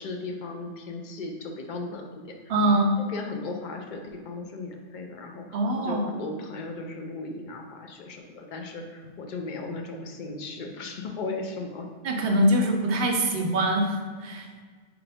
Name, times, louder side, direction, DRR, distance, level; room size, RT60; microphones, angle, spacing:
voice 1, 0.0-2.3 2.7-5.4 5.7-11.9, left 3 dB, 60° left, 2 dB, 0.5 m, -36 dB
voice 2, 2.5-2.9 5.5-6.1 12.0-14.5, right 1 dB, 60° right, 2 dB, 0.8 m, -23 dB
3.8 x 3.4 x 3.4 m, 1.5 s
omnidirectional pair, 1.2 m